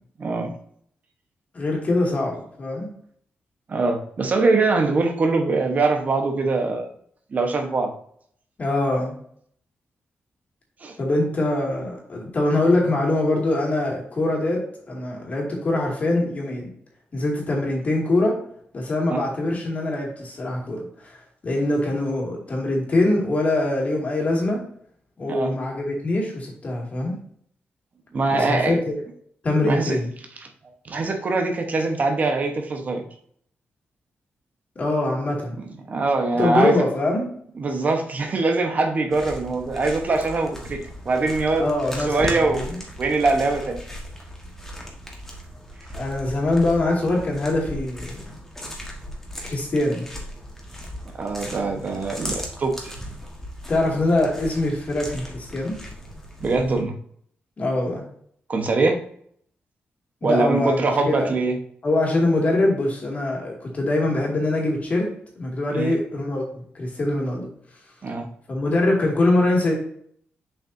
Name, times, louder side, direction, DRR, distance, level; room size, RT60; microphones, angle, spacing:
voice 1, 0.2-0.5 3.7-6.9 7.3-7.9 10.8-11.0 19.1-19.2 25.3-25.5 28.1-28.8 29.6-30.0 30.4-30.5 30.8-33.1 35.6-36.8 37.6-40.8 41.0-41.7 42.1-42.7 43.0-43.8 51.1-52.9 56.4-56.9 58.5-59.0 60.2-61.6 65.7-65.9 68.0-68.3, right 3 dB, 40° right, 4 dB, 1.1 m, -23 dB
voice 2, 1.5-2.9 8.6-9.2 11.0-16.7 17.1-18.4 18.7-21.2 21.4-24.6 25.2-27.2 28.3-29.0 29.4-30.1 34.8-35.5 36.4-37.3 41.5-42.8 45.9-48.3 49.4-50.1 53.7-55.8 57.6-58.0 60.2-60.8 61.1-61.3 61.8-65.1 65.4-67.5 68.5-69.7, left 2 dB, 40° left, -1 dB, 2.3 m, -23 dB
sound 1, 39.1-56.8, equal, 10° left, 1.5 m, -37 dB
7.0 x 5.6 x 2.7 m, 0.63 s
wide cardioid pair, 130°, 4 cm